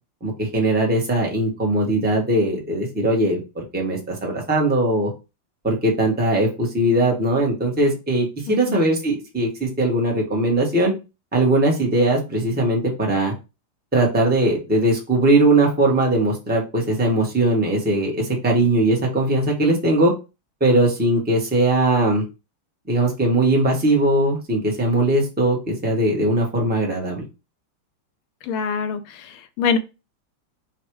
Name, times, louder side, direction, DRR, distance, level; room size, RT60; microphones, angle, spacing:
voice 1, 0.2-5.1 5.6-10.9 11.3-13.3 13.9-20.1 20.6-22.2 22.9-27.2, right 1 dB, 5° right, -1 dB, 0.7 m, -20 dB
voice 2, 8.5-8.9 28.4-29.8, left 6 dB, 80° left, 8 dB, 1.5 m, -25 dB
4.1 x 2.4 x 4.5 m, 0.27 s
omnidirectional pair, 2.3 m